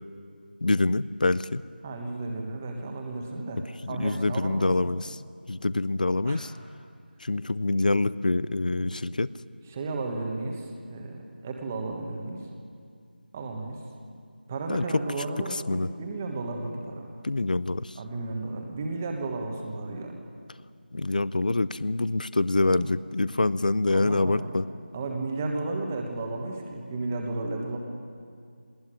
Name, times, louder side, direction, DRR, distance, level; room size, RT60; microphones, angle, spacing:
voice 1, 0.6-1.6 3.8-5.2 5.5-6.5 7.2-9.3 14.7-14.8 15.5-15.9 17.2-18.0 20.9-24.7, left 2 dB, 50° left, 18 dB, 0.6 m, -26 dB
voice 2, 1.8-5.0 6.2-6.5 8.6-9.1 9.7-12.4 13.3-13.8 14.5-17.1 17.9-20.2 22.7-22.9 23.9-24.5 24.9-27.8, right 2 dB, 10° right, 2 dB, 1.3 m, -34 dB
20.0 x 19.5 x 10.0 m, 2.3 s
figure-of-eight pair, 175°, 6 cm